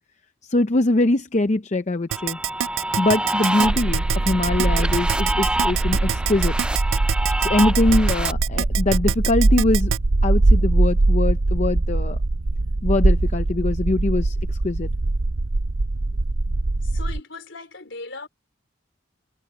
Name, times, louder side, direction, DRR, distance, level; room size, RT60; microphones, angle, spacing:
voice 1, 0.5-2.4 3.0-6.5 7.4-9.9 10.2-12.2 12.8-14.9, left 2 dB, 35° left, 0.6 m, -22 dB
sound 1, 2.1-8.3, right 1 dB, 5° right, 0.3 m, -27 dB
Keyboard (musical), 2.1-10.0, right 11 dB, 80° right, 0.4 m, -25 dB
sound 2, 3.6-17.2, right 2 dB, 60° right, 0.8 m, -22 dB
voice 2, 16.8-18.3, left 3 dB, 70° left, 4.1 m, -38 dB
head